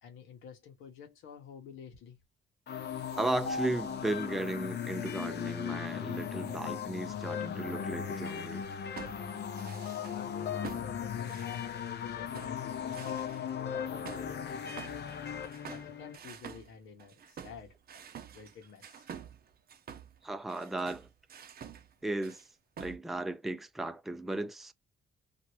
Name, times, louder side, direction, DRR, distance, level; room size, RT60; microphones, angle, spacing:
voice 1, 0.0-2.2 10.0-15.4 15.7-17.7 18.3-19.1, left 6 dB, 85° left, 1.0 m, -50 dB
sound 1, 2.7-16.2, left 8 dB, 55° left, 0.7 m, -37 dB
voice 2, 3.2-8.6 20.2-21.1 22.0-22.4 22.8-24.7, right 2 dB, ahead, 0.4 m, -35 dB
sound 2, 8.7-10.2 10.6-12.0 12.3-13.5 14.1-21.9 22.2-22.5 22.8-23.0, right 7 dB, 50° right, 0.6 m, -48 dB
2.8 x 2.5 x 3.0 m
cardioid pair, 90°, 20 cm